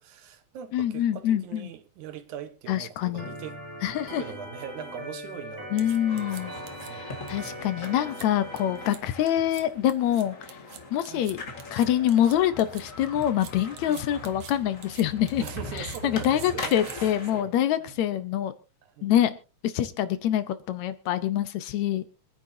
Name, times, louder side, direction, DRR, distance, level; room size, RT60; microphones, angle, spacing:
voice 1, 0.0-3.6 4.1-7.1 8.5-8.6 11.0-11.3 13.9-14.1 15.4-17.5 17.8-18.2 18.8-19.1, right 9 dB, 80° right, 2.6 m, -42 dB
voice 2, 0.7-1.7 2.7-3.3 3.8-4.2 5.7-6.5 6.9-10.4 10.9-11.4 11.7-15.4 15.8-18.5 19.0-19.3 19.6-22.1, left 11 dB, 75° left, 2.1 m, -25 dB
Organ, 3.2-8.9, equal, 5° right, 8.0 m, -41 dB
sound 1, 5.8-6.9 7.3-7.5 7.8-8.3 8.6-9.0 9.3-9.6 9.9-12.8 13.2-14.5 14.8-17.2, right 9 dB, 60° right, 2.0 m, -46 dB
sound 2, 6.1-17.4, left 3 dB, 30° left, 2.0 m, -41 dB
26.0 x 9.6 x 2.8 m
omnidirectional pair, 3.4 m